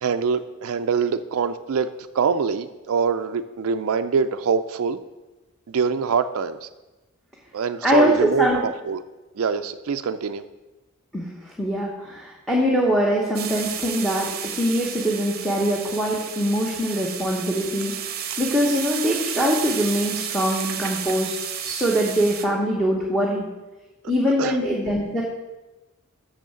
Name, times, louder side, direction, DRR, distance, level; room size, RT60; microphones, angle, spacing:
voice 1, 0.0-5.0 5.7-6.7 7.5-9.0 9.4-10.4 24.4-24.6, right 6 dB, 65° right, 9 dB, 0.4 m, -24 dB
voice 2, 7.8-8.6 11.1-17.9 18.4-21.3 21.6-23.5 24.0-25.2, equal, ahead, -4 dB, 1.0 m, -23 dB
sound 1, 13.3-22.4, right 9 dB, 45° right, 0.8 m, -32 dB
6.4 x 6.3 x 6.8 m, 1.1 s
head